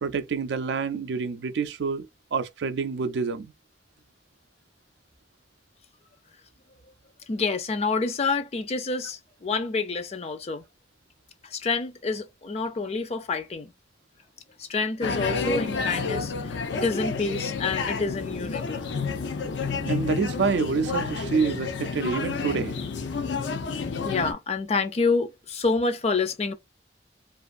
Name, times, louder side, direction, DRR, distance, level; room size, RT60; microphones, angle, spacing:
voice 1, 0.0-3.5 19.8-22.7, right 5 dB, 75° right, 0.4 m, -27 dB
voice 2, 7.3-10.6 11.4-13.7 14.6-18.8 24.0-26.5, left 4 dB, 35° left, 0.4 m, -28 dB
sound 1, 15.0-24.3, left 4 dB, 90° left, 0.5 m, -30 dB
2.5 x 2.4 x 2.4 m
head